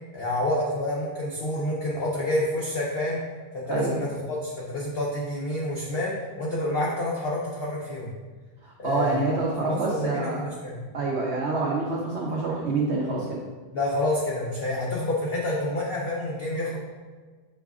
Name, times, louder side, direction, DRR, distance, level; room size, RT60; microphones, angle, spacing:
voice 1, 0.1-3.2 3.5-8.1 8.8-10.8 13.7-16.8, left 1 dB, 80° left, -4 dB, 0.5 m, -28 dB
voice 2, 8.6-10.4 10.9-13.2, right 3 dB, 85° right, -3 dB, 0.5 m, -27 dB
6.4 x 2.4 x 3.5 m, 1.4 s
omnidirectional pair, 1.9 m